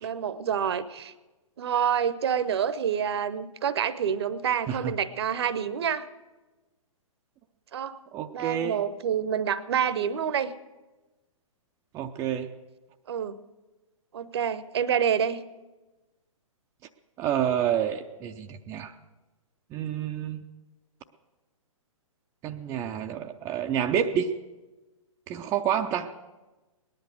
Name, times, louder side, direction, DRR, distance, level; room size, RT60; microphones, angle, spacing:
voice 1, 0.0-1.1 1.6-6.1 7.7-8.0 8.3-10.5 13.1-13.4 14.1-15.4, right 8 dB, 50° right, 15 dB, 0.8 m, -27 dB
voice 2, 8.1-8.8 11.9-12.5 17.2-18.9 19.7-20.4 22.4-24.3 25.3-26.1, right 9 dB, 15° right, 4 dB, 0.4 m, -29 dB
18.5 x 10.5 x 6.4 m, 1.2 s
figure-of-eight pair, 120°, 18 cm